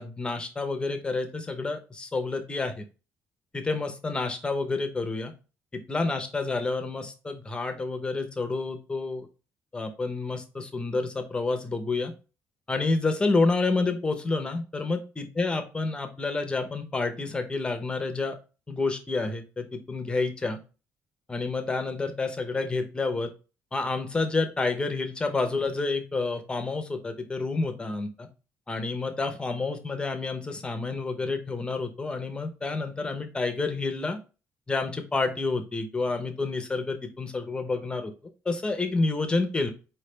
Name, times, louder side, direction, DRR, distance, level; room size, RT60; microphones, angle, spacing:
voice 1, 0.0-2.8 3.5-5.3 5.7-9.3 9.7-12.1 12.7-18.4 18.7-20.6 21.3-23.3 23.7-28.3 28.7-34.2 34.7-38.1 38.4-39.7, left 3 dB, 15° left, 7 dB, 0.7 m, -29 dB
4.6 x 3.2 x 3.2 m, 0.32 s
cardioid pair, 135°, 6 cm